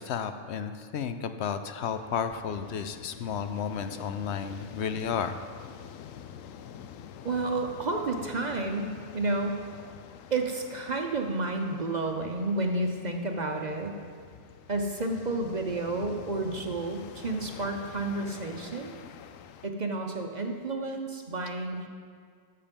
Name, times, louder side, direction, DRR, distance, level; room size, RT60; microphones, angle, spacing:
voice 1, 0.0-5.4, left 7 dB, 65° left, 9 dB, 0.8 m, -32 dB
sound 1, 1.9-19.7, left 8 dB, 90° left, 1.0 m, -47 dB
voice 2, 7.2-9.6 10.3-14.0 14.7-18.9 19.6-21.9, right 2 dB, 40° right, 3 dB, 0.7 m, -31 dB
13.0 x 6.7 x 5.3 m, 2.1 s
omnidirectional pair, 1.3 m